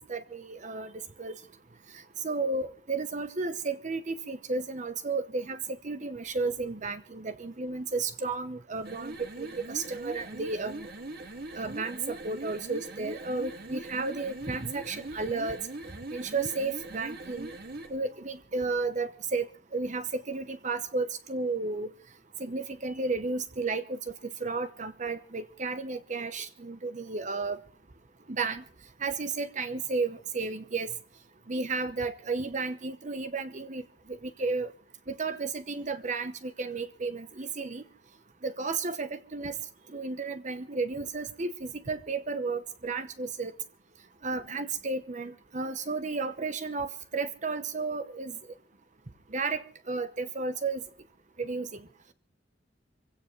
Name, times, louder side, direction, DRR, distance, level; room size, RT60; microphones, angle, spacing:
voice 1, 0.1-0.9 1.2-1.3 2.2-5.6 5.8-10.9 11.5-15.6 16.1-17.5 17.9-21.9 22.4-24.1 24.4-27.6 28.3-28.6 29.0-30.9 31.5-33.8 34.2-34.7 35.1-37.8 38.4-39.6 39.9-43.5 44.2-48.4 49.3-50.8 51.4-51.8, right 3 dB, 40° right, 0.9 m, -33 dB
sound 1, 8.7-18.0, right 2 dB, 60° right, 2.2 m, -41 dB
26.0 x 16.5 x 3.2 m
head